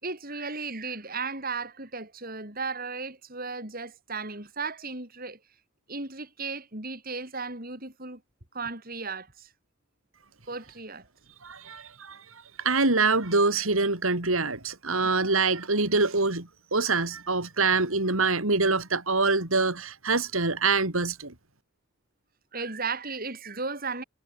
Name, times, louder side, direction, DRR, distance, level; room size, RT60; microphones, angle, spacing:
voice 1, 0.0-5.4 5.9-8.2 8.5-9.5 10.5-11.0 22.5-24.0, right 4 dB, 45° right, 6.1 m, -35 dB
voice 2, 11.4-21.3, right 3 dB, 75° right, 3.5 m, -25 dB
head